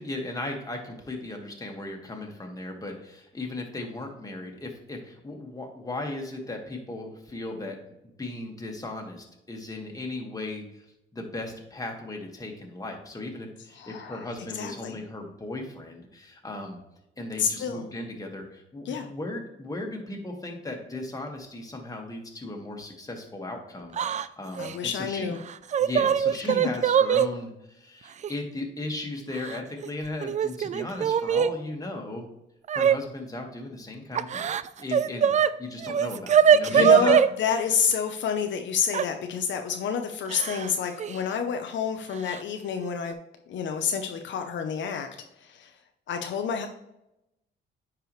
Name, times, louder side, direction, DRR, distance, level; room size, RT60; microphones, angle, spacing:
voice 1, 0.0-7.8 8.0-10.9 11.1-16.8 17.2-25.3 25.8-32.3 32.7-34.5 34.8-35.3 35.6-37.2, left 2 dB, 15° left, 1 dB, 1.8 m, -36 dB
voice 2, 13.8-14.3 14.5-15.0 17.4-17.8 18.8-19.1 24.6-25.4 26.4-26.5 36.6-43.2 43.5-45.1 45.4-45.7 46.1-46.7, left 7 dB, 70° left, 5 dB, 0.7 m, -29 dB
Yell / Crying sobbing, 23.9-24.3 24.6-24.7 25.5-27.3 28.2-28.3 29.3-29.9 30.2-31.5 32.7-33.0 34.1-35.5 35.8-37.3 38.9-39.1 40.3-40.7 41.0-41.2 42.3-42.4 42.8-43.1, right 8 dB, 35° right, 0.4 m, -22 dB
9.4 x 4.8 x 3.2 m, 0.87 s
cardioid pair, 90°, 20 cm